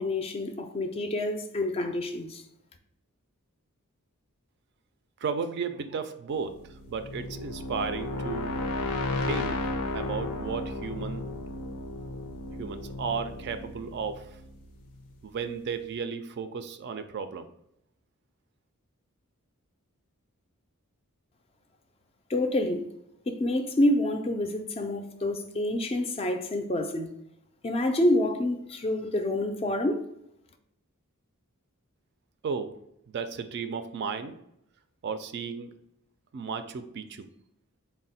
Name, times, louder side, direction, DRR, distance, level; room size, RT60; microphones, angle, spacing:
voice 1, 0.0-2.4 22.3-22.9 23.3-27.1 27.6-30.0, left 1 dB, 25° left, 0.3 m, -27 dB
voice 2, 5.2-8.7 9.2-11.3 12.6-14.4 15.2-17.5 32.4-32.8 33.1-34.4 35.0-35.8 36.3-37.3, right 5 dB, 50° right, 0.3 m, -34 dB
sound 1, 6.5-15.3, left 2 dB, 90° left, 0.5 m, -34 dB
4.1 x 2.1 x 4.0 m
head